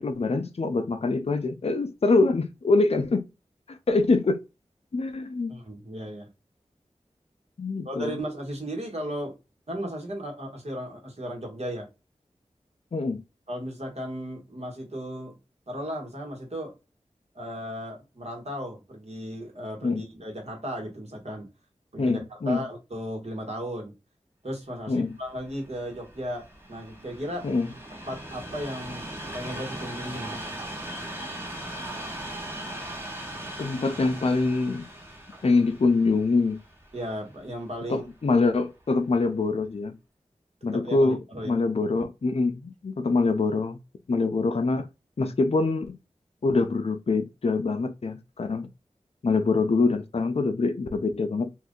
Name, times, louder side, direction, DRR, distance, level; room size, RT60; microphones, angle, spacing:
voice 1, 0.0-3.3 3.7-4.4 4.9-5.6 7.6-8.2 12.9-13.2 19.8-20.0 22.0-22.6 24.9-25.1 27.4-27.7 33.6-34.9 35.4-36.6 37.9-39.9 40.6-43.8 44.1-44.9 45.2-46.0 46.4-48.7 49.2-51.5, left 3 dB, 55° left, 0.5 m, -24 dB
voice 2, 5.5-6.3 7.8-9.4 9.7-11.9 13.5-15.3 15.7-16.7 17.3-21.5 21.9-23.9 24.4-27.5 28.1-30.5 36.9-38.0 40.7-41.6, equal, 60° right, 1.3 m, -35 dB
Train, 25.0-38.2 38.9-39.1, right 1 dB, 20° right, 1.0 m, -39 dB
2.6 x 2.5 x 3.6 m
wide cardioid pair, 65°, 12 cm